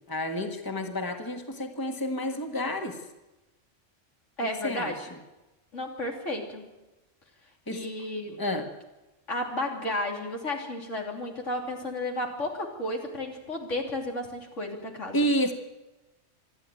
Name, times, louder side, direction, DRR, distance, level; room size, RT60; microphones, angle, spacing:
voice 1, 0.1-3.0 4.6-5.1 7.7-7.9 8.4-8.7 15.1-15.5, equal, 15° left, 4 dB, 1.7 m, -30 dB
voice 2, 4.4-5.0 5.7-6.6 7.7-8.4 9.3-15.2, left 1 dB, 85° left, 1 dB, 3.5 m, -32 dB
26.5 x 11.5 x 9.3 m, 1.1 s
omnidirectional pair, 1.2 m